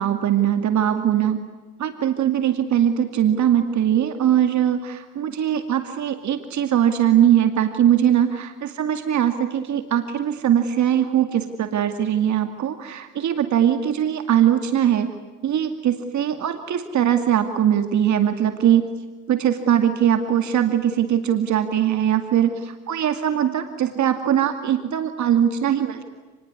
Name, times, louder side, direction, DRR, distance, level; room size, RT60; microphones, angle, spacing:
voice 1, 0.0-1.4 1.8-15.1 15.4-18.9 19.3-26.1, right 10 dB, 70° right, 7 dB, 2.4 m, -21 dB
28.5 x 20.5 x 9.7 m, 1.3 s
cardioid pair, 90°, 30 cm